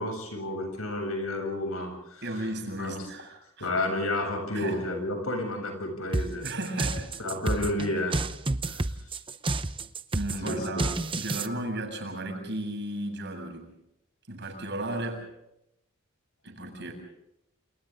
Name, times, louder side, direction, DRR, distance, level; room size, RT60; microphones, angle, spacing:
voice 1, 0.0-2.2 2.8-3.0 3.6-6.4 7.2-8.2 8.7-8.8 10.4-10.8, left 1 dB, 80° left, 4 dB, 7.9 m, -31 dB
voice 2, 2.2-3.7 4.5-4.8 6.4-7.1 10.1-13.7 14.3-15.3 16.4-16.9, right 1 dB, 55° right, 3 dB, 7.6 m, -34 dB
sound 1, 6.1-11.5, right 2 dB, 25° right, 0.8 m, -30 dB
29.0 x 28.5 x 3.8 m, 0.81 s
head